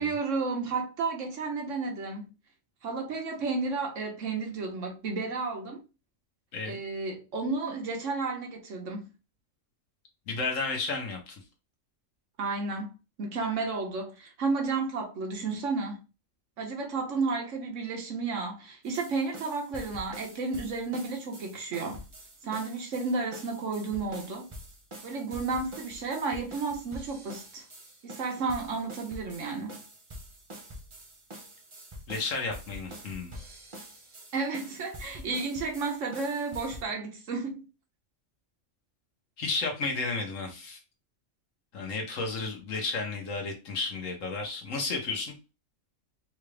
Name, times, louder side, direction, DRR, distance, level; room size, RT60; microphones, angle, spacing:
voice 1, 0.0-2.3 2.8-5.8 6.6-9.1 12.4-12.9 13.2-16.0 16.6-22.0 22.4-24.5 25.0-27.7 28.0-29.8 34.3-37.6, right 4 dB, 70° right, 1.3 m, -32 dB
voice 2, 10.3-11.4 32.1-33.4 39.4-40.8 41.7-45.3, left 3 dB, 85° left, 1.5 m, -32 dB
sound 1, 18.8-36.8, equal, 30° right, 0.7 m, -46 dB
3.9 x 2.4 x 3.3 m
omnidirectional pair, 1.3 m